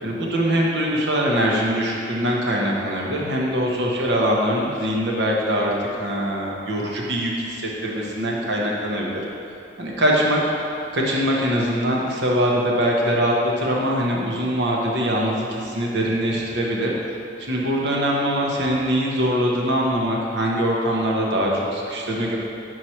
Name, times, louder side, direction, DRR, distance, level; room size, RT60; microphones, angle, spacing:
voice 1, 0.0-5.7 6.0-9.2 9.8-10.4 10.9-16.9 17.4-22.4, equal, 65° right, -2 dB, 1.0 m, -22 dB
6.0 x 4.7 x 4.4 m, 2.6 s
head